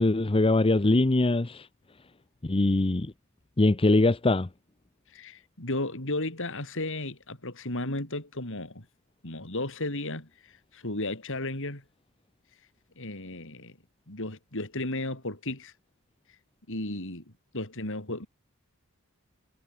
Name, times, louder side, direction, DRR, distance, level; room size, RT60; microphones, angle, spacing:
voice 1, 0.0-1.7 2.4-3.1 3.6-4.5, left 2 dB, 25° left, 0.7 m, -22 dB
voice 2, 5.1-8.9 9.2-11.8 13.0-13.7 14.1-15.7 16.7-18.3, left 2 dB, 60° left, 5.6 m, -34 dB
head